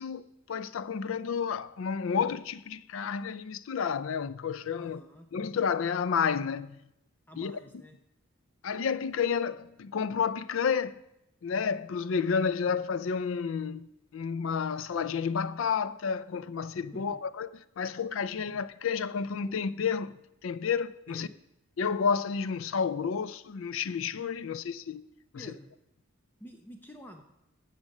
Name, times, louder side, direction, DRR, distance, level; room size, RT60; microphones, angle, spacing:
voice 1, 0.0-5.0 5.3-6.8 7.4-7.6 8.6-11.0 11.4-17.5 17.8-20.2 20.4-21.3 21.8-25.0 25.3-25.5, left 6 dB, 75° left, 0.4 m, -31 dB
voice 2, 4.8-5.3 7.3-8.0 16.9-17.2 18.5-18.6 19.4-19.5 21.1-21.3 24.4-24.6 25.3-25.7 26.4-27.2, equal, 10° left, 0.7 m, -49 dB
14.5 x 5.1 x 6.5 m
head